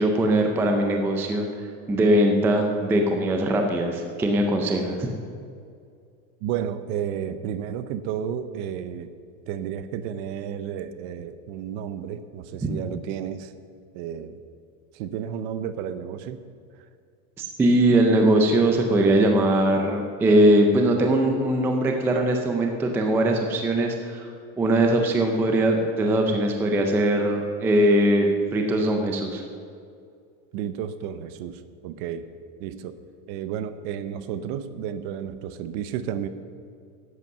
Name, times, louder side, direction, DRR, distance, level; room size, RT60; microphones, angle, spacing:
voice 1, 0.0-5.1 17.4-24.3 24.6-29.4, right 1 dB, 5° right, 3 dB, 0.4 m, -21 dB
voice 2, 6.4-9.1 9.5-13.5 13.9-14.4 14.9-16.4 30.5-32.3 32.6-33.0 33.3-36.3, right 9 dB, 40° right, 12 dB, 0.7 m, -32 dB
11.0 x 8.2 x 7.6 m, 2.3 s
supercardioid pair, 160°, 42 cm